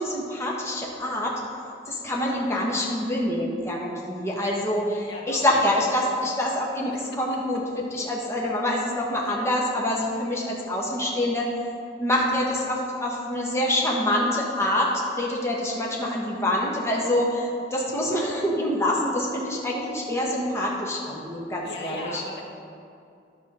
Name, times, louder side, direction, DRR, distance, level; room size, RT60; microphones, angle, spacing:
voice 1, 0.0-1.4 1.9-7.6 7.9-11.5 12.0-22.2, left 1 dB, 15° left, -3 dB, 1.2 m, -26 dB
voice 2, 5.1-5.6 9.4-9.5 21.6-22.4, left 1 dB, 65° left, -1 dB, 1.4 m, -37 dB
11.5 x 6.9 x 4.3 m, 2.4 s
head